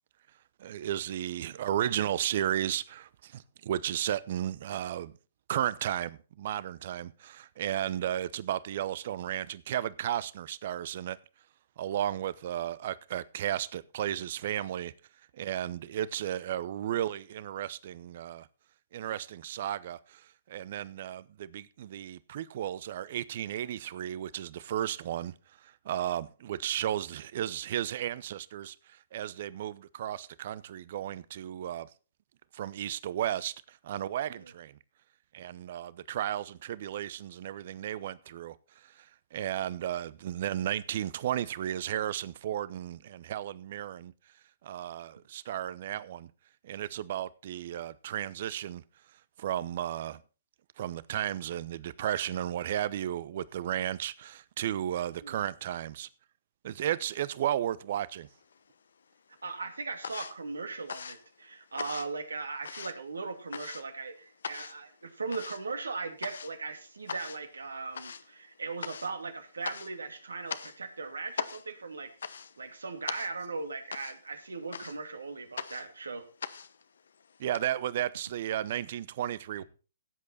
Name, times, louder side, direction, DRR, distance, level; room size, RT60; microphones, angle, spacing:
voice 1, 0.6-5.1 5.5-11.2 11.8-14.9 15.3-18.5 18.9-25.3 25.6-31.9 32.5-34.8 35.3-38.5 38.8-44.1 44.6-46.3 46.6-48.8 49.4-50.2 50.8-56.1 56.6-58.3 77.4-79.6, right 11 dB, 50° right, 0.7 m, -34 dB
sound 1, 58.2-59.0 59.3-77.6, left 6 dB, 70° left, 1.0 m, -42 dB
voice 2, 59.4-72.1 72.6-76.3, right 4 dB, 80° right, 2.4 m, -38 dB
16.0 x 8.5 x 4.2 m
figure-of-eight pair, 125°, 0 cm